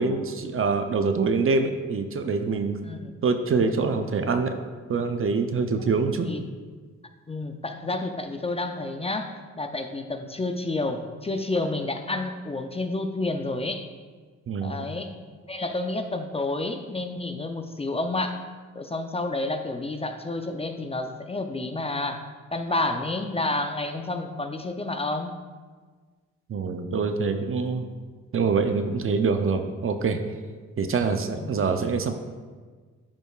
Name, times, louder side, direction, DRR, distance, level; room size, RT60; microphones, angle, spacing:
voice 1, 0.0-2.9 3.2-4.6 4.9-6.3 14.5-14.8 26.5-27.9 28.3-30.2 30.8-32.2, right 4 dB, 45° right, 7 dB, 0.6 m, -25 dB
voice 2, 7.3-13.9 14.6-15.1 15.5-18.4 18.7-22.2 22.5-25.3 31.4-31.6, left 2 dB, 20° left, 6 dB, 0.6 m, -30 dB
12.0 x 5.1 x 2.4 m, 1.5 s
cardioid pair, 75°, 31 cm